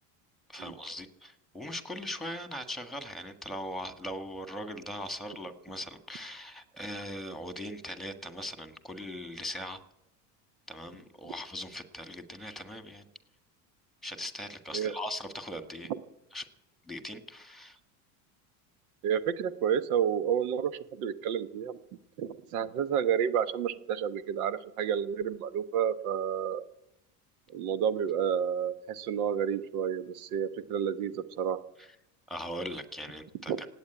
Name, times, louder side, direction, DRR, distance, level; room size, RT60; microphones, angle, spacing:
voice 1, 0.5-9.8 10.7-13.1 14.0-15.9 16.3-16.5 16.9-17.8 31.8-31.9 32.3-33.7, equal, ahead, 9 dB, 1.6 m, -40 dB
voice 2, 19.0-21.8 22.2-26.6 27.5-31.6 33.5-33.6, right 8 dB, 85° right, 13 dB, 1.2 m, -30 dB
17.0 x 8.7 x 9.1 m, 0.88 s
supercardioid pair, 105°, 43 cm